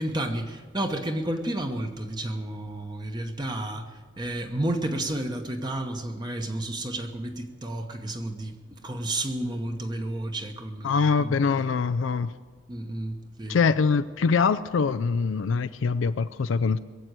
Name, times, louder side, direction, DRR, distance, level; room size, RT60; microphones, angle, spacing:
voice 1, 0.0-11.6 12.7-13.6, right 1 dB, 20° right, 4 dB, 1.0 m, -31 dB
voice 2, 10.8-12.3 13.5-16.8, left 5 dB, 80° left, 11 dB, 0.4 m, -23 dB
22.0 x 7.7 x 8.1 m, 1.5 s
head